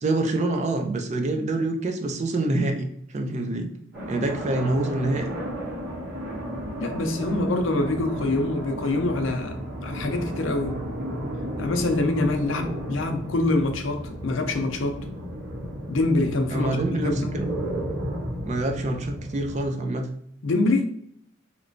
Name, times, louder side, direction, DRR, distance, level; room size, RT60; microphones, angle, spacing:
voice 1, 0.0-2.9 3.1-3.7 4.1-5.3 16.5-17.5 18.4-20.1, right 2 dB, 35° right, 0.4 m, -26 dB
sound 1, 3.9-19.7, equal, 85° right, 1.3 m, -33 dB
voice 2, 6.8-10.8 11.6-15.1 15.9-17.3 20.4-20.9, left 2 dB, 75° left, 0.5 m, -25 dB
3.1 x 3.0 x 2.5 m
head